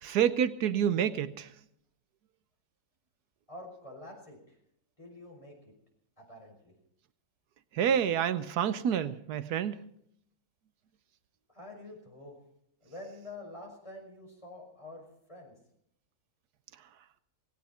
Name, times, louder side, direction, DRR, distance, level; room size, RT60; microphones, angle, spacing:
voice 1, 0.0-1.5 7.7-9.8, right 8 dB, 85° right, 1.3 m, -28 dB
voice 2, 3.5-4.6 5.0-5.7 6.2-6.7 11.5-12.4 12.8-15.6, left 2 dB, 20° left, 5.7 m, -47 dB
18.0 x 17.5 x 4.4 m
omnidirectional pair, 1.6 m